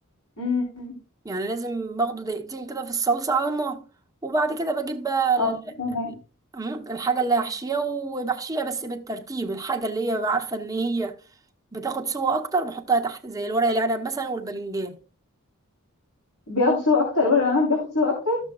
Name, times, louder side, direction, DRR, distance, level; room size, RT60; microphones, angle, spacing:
voice 1, 0.4-1.0 5.4-6.2 16.5-18.4, left 3 dB, 85° left, 3.4 m, -23 dB
voice 2, 1.2-3.8 4.2-5.6 6.5-11.2 11.7-15.0, right 3 dB, 15° right, 0.9 m, -26 dB
14.0 x 7.0 x 2.3 m
head